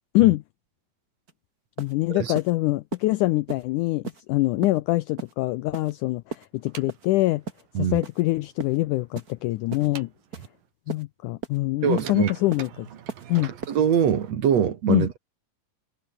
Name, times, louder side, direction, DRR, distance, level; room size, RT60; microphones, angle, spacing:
sound 1, 1.3-1.4 1.8-1.9 2.3-2.5 2.9-3.0 3.5-3.6 4.0-4.2 4.6-4.8 5.2-5.3 5.7-5.9 6.3-6.5 6.9-7.1 7.5-7.6 8.0-8.2 8.6-8.8 9.1-9.3 9.7-9.9 10.3-10.5 10.9-11.0 11.4-11.6 12.0-12.1 12.5-12.7 13.1-13.3 13.6-13.7, right 4 dB, 30° right, 2.4 m, -36 dB
voice 1, 1.8-7.4 7.8-10.1 10.9-12.9 13.3-13.5 14.9-15.1, left 19 dB, 80° left, 1.8 m, -24 dB
sound 2, 6.6-10.7 11.8-14.3, right 10 dB, 75° right, 3.8 m, -44 dB
voice 2, 11.8-12.3 13.7-15.2, right 8 dB, 55° right, 2.5 m, -23 dB
omnidirectional pair, 4.1 m